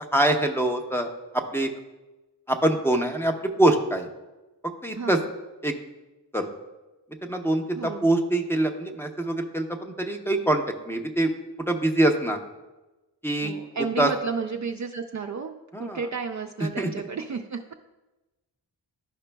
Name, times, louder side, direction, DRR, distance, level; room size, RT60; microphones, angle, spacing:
voice 1, 0.1-1.1 1.3-1.7 2.5-3.3 3.6-4.1 4.8-5.2 5.6-5.7 6.3-6.5 7.2-11.3 11.7-12.4 13.2-13.5 14.0-14.1 15.7-16.0 16.8-16.9, right 1 dB, 5° left, 4 dB, 0.8 m, -24 dB
voice 2, 7.7-8.1 13.4-17.7, right 5 dB, 40° right, 3 dB, 0.4 m, -32 dB
12.0 x 5.0 x 2.2 m, 1.1 s
cardioid pair, 65°, 44 cm